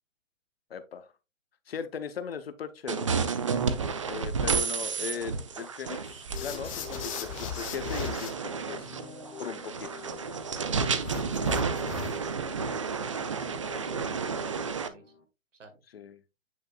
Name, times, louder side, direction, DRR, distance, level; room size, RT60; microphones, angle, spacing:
voice 1, 0.7-1.1 1.7-3.1 4.0-8.9 9.4-10.1 15.9-16.2, left 7 dB, 50° left, 12 dB, 0.8 m, -38 dB
sound 1, 2.9-14.9, right 5 dB, 25° right, 0.4 m, -31 dB
voice 2, 4.4-5.5 10.5-15.1 15.5-15.8, right 3 dB, 70° right, 6 dB, 2.0 m, -50 dB
sound 2, 6.3-15.2, left 5 dB, 65° left, 1.6 m, -48 dB
sound 3, 6.3-8.3 11.0-12.3, left 9 dB, 25° left, 1.0 m, -38 dB
9.3 x 5.1 x 2.3 m, 0.27 s
figure-of-eight pair, 125°, 39 cm